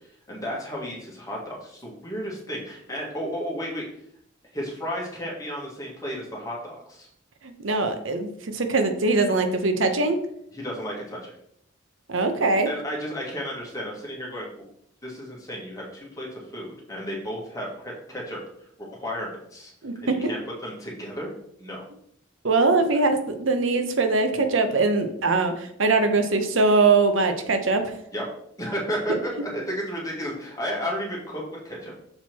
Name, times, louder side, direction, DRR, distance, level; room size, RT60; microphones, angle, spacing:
voice 1, 0.3-3.8 4.5-7.1 10.5-11.3 12.6-14.6 15.0-18.4 18.8-19.7 20.0-21.3 21.6-21.8 28.1-28.2 28.6-31.9, equal, 15° left, -3 dB, 1.8 m, -33 dB
voice 2, 7.4-10.2 12.1-12.7 19.8-20.2 22.4-27.8, right 3 dB, 75° right, 7 dB, 0.9 m, -22 dB
6.6 x 4.2 x 4.5 m, 0.72 s
head